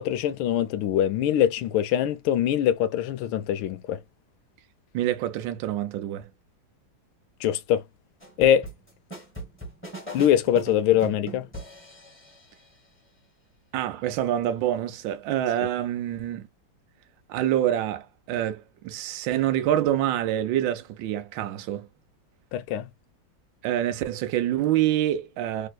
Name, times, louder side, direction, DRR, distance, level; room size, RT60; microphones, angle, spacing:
voice 1, 0.0-4.0 7.4-7.8 8.4-8.7 10.1-11.5 22.5-22.9, left 10 dB, 85° left, 1.4 m, -23 dB
voice 2, 4.9-6.3 13.7-16.5 17.3-21.9 23.6-25.7, right 12 dB, 75° right, 1.3 m, -26 dB
sound 1, 8.2-12.5, right 2 dB, 5° left, 1.2 m, -40 dB
3.5 x 2.7 x 2.3 m
omnidirectional pair, 2.2 m